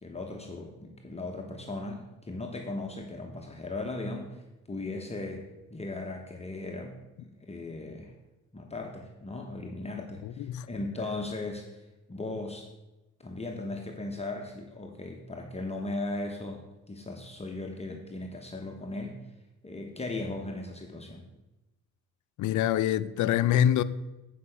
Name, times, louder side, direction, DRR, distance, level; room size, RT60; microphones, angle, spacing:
voice 1, 0.0-8.1 8.5-11.8 12.1-12.7 13.2-19.2 19.6-21.2, left 2 dB, 20° left, 1.0 m, -37 dB
voice 2, 10.2-10.7 22.4-23.8, left 10 dB, 75° left, 0.5 m, -25 dB
8.4 x 5.0 x 5.8 m
cardioid pair, 90°, 30 cm